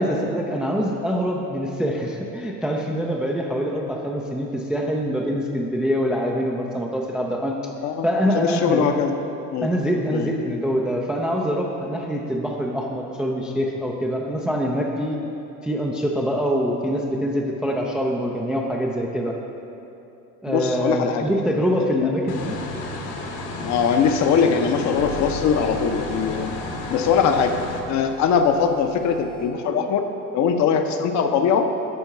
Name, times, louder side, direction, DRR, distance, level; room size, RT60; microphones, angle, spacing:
voice 1, 0.0-7.5 8.0-8.9 9.6-15.2 15.6-19.3 20.4-22.6, equal, ahead, -1 dB, 0.4 m, -24 dB
voice 2, 8.3-9.2 9.5-9.7 10.1-10.3 20.5-21.3 21.8-22.1 23.6-26.5 26.9-27.5 27.9-30.1 30.3-31.7, left 6 dB, 35° left, 6 dB, 0.7 m, -21 dB
sound 1, 22.3-27.8, left 2 dB, 55° left, 1.2 m, -32 dB
sound 2, 25.0-29.5, left 2 dB, 75° left, 2.2 m, -39 dB
11.0 x 4.5 x 5.6 m, 2.9 s
figure-of-eight pair, 65°, 48 cm